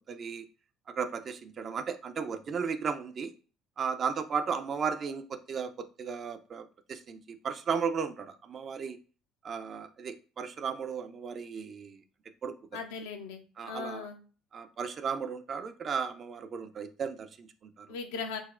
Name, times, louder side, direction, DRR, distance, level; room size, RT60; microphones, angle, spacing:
voice 1, 0.1-0.5 0.9-3.3 3.8-9.0 9.4-12.0 12.4-12.5 13.6-14.1 14.5-17.9, right 6 dB, 45° right, 9 dB, 0.4 m, -35 dB
voice 2, 12.7-14.2 17.9-18.4, left 5 dB, 75° left, 5 dB, 0.5 m, -38 dB
3.9 x 2.1 x 2.4 m, 0.37 s
hypercardioid pair, 60°, 0 cm